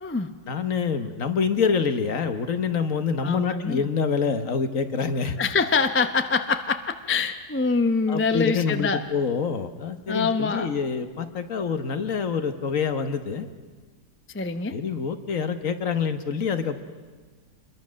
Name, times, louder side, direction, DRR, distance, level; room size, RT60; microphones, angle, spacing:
voice 1, 0.5-5.4 8.1-13.5 14.7-16.8, left 6 dB, 55° left, 9 dB, 1.4 m, -26 dB
voice 2, 3.2-3.9 5.4-9.0 10.1-10.7 14.3-14.7, left 4 dB, 15° left, 8 dB, 0.4 m, -24 dB
26.5 x 22.0 x 6.3 m, 1.4 s
omnidirectional pair, 1.8 m